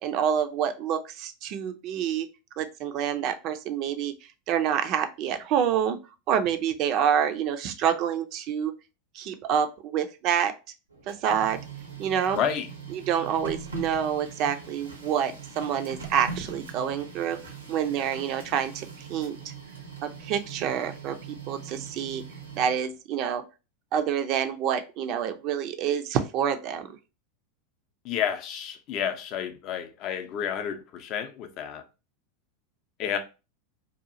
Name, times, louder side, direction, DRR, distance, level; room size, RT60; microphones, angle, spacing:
voice 1, 0.0-2.3 2.6-4.1 4.5-6.0 6.3-8.7 9.2-10.5 11.1-11.6 12.0-12.4 12.9-17.4 17.7-19.4 20.0-22.2 22.6-23.4 23.9-26.9, right 8 dB, 45° right, 0.4 m, -27 dB
Printer, 10.9-23.0, right 4 dB, 85° right, 0.7 m, -42 dB
voice 2, 12.3-12.7 28.0-31.8 33.0-33.2, left 8 dB, 45° left, 0.5 m, -30 dB
2.7 x 2.3 x 2.6 m
figure-of-eight pair, 85°, 0 cm